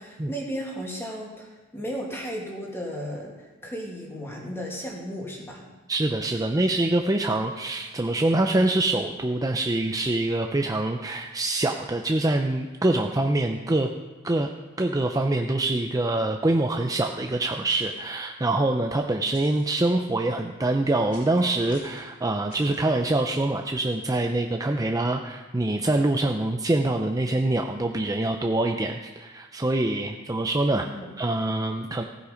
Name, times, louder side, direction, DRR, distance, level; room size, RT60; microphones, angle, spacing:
voice 1, 0.0-5.7 30.7-31.1, equal, 10° left, -1 dB, 2.3 m, -35 dB
voice 2, 5.9-13.9 14.2-14.5 14.8-30.8 31.2-32.0, right 2 dB, 15° right, 3 dB, 0.6 m, -25 dB
sound 1, 17.7-18.0 19.3-19.7 21.1-21.4 21.7-22.1 22.5-22.8, left 1 dB, 40° left, 5.1 m, -47 dB
15.5 x 8.2 x 5.2 m, 1.2 s
head